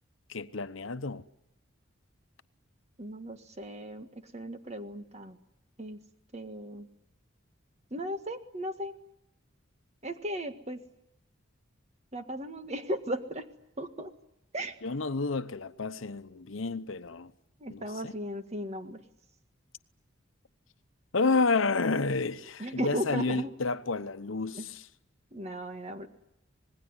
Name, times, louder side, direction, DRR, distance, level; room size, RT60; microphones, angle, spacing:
voice 1, 0.3-1.3 14.8-17.3 17.7-18.1 21.1-24.8, left 3 dB, 80° left, 0.9 m, -30 dB
voice 2, 3.0-5.4 5.8-6.0 6.3-6.9 7.9-8.9 10.0-10.8 12.1-13.5 13.8-14.1 14.5-14.8 17.6-19.0 22.6-23.5 24.5-24.7 25.3-26.1, equal, 35° right, 1.7 m, -36 dB
26.5 x 20.0 x 9.8 m
head